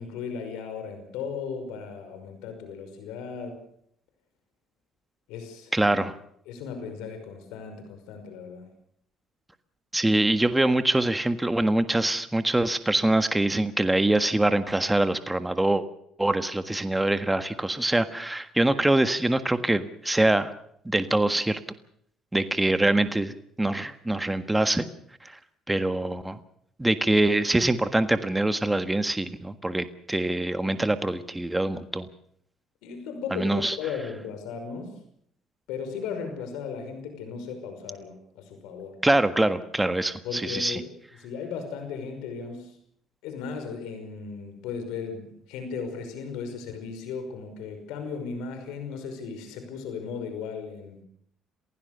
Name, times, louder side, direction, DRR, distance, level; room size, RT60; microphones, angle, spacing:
voice 1, 0.0-3.6 5.3-5.7 6.5-8.7 32.8-35.0 35.7-39.0 40.2-40.9 41.2-42.7 43.2-51.0, left 6 dB, 80° left, 8 dB, 5.6 m, -36 dB
voice 2, 5.7-6.1 9.9-15.8 16.2-20.5 20.8-21.6 22.3-24.9 25.2-25.4 25.7-26.4 26.8-32.1 33.3-33.8 39.0-40.8, right 1 dB, 10° right, 10 dB, 1.6 m, -24 dB
27.5 x 16.0 x 6.8 m, 0.68 s
supercardioid pair, 80°, 0 cm